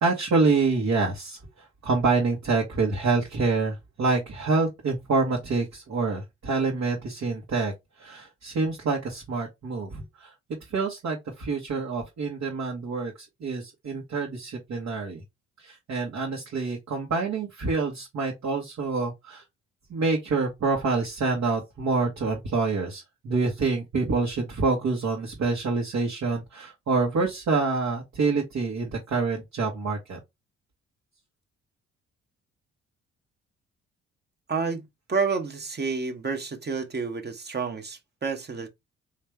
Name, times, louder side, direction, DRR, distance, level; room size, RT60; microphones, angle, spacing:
voice 1, 0.0-1.4 1.8-7.7 8.0-10.3 10.7-15.2 15.6-19.4 19.9-30.2, right 4 dB, 60° right, 1.5 m, -27 dB
voice 2, 34.5-38.7, right 5 dB, 35° right, 1.1 m, -29 dB
3.4 x 3.2 x 3.3 m
hypercardioid pair, 55°, 31 cm